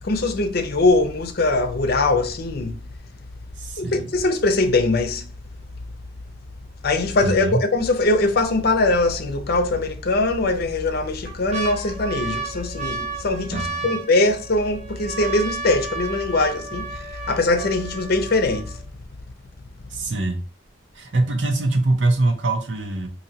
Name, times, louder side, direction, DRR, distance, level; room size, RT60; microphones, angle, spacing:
voice 1, 0.0-2.7 3.8-5.3 6.8-18.8, left 2 dB, 60° left, 0.6 m, -21 dB
voice 2, 3.6-4.1 7.2-7.6 13.5-13.9 19.9-20.4 20.9-23.1, right 2 dB, 85° right, 0.8 m, -23 dB
sound 1, 11.3-19.0 19.7-19.8 19.9-20.4 20.9-21.0, right 4 dB, 35° right, 0.9 m, -33 dB
2.8 x 2.7 x 4.0 m
head